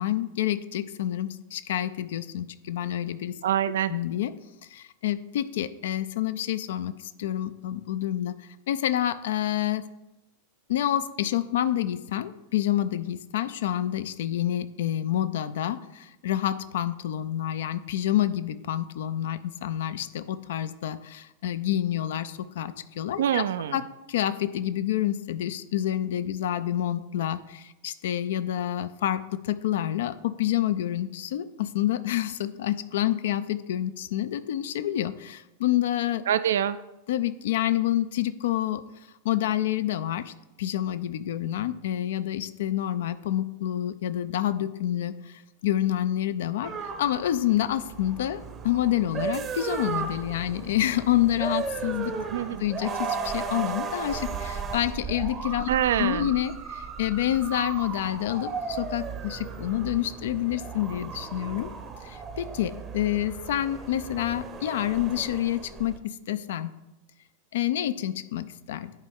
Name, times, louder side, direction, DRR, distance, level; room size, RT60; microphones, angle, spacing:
voice 1, 0.0-3.4 3.9-4.3 4.7-9.9 10.7-23.4 23.7-36.2 37.1-38.8 39.2-52.1 52.6-55.7 56.0-61.7 62.0-66.7 67.5-68.9, left 12 dB, 60° left, 13 dB, 0.4 m, -28 dB
voice 2, 3.4-3.9 23.2-23.8 36.3-36.8 52.2-52.6 55.7-56.3, right 10 dB, 60° right, 14 dB, 0.3 m, -25 dB
sound 1, 46.6-66.0, right 5 dB, 25° right, 0.7 m, -35 dB
10.5 x 4.4 x 3.6 m, 0.96 s
figure-of-eight pair, 90°, 0 cm